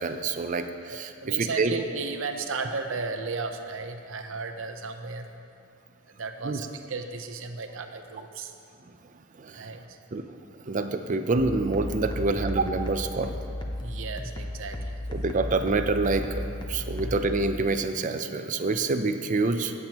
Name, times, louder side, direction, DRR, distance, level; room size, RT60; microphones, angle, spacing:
voice 1, 0.0-1.1 1.4-1.7 6.4-6.7 9.4-9.7 10.1-10.3 10.7-13.4 15.1-19.7, right 3 dB, 40° right, 8 dB, 0.5 m, -27 dB
voice 2, 0.9-5.3 6.0-8.6 9.5-10.0 13.8-15.0 17.0-17.2, right 4 dB, 75° right, 6 dB, 0.7 m, -35 dB
sound 1, 11.4-17.4, left 1 dB, 20° left, 0.7 m, -34 dB
17.5 x 7.7 x 3.0 m, 2.5 s
head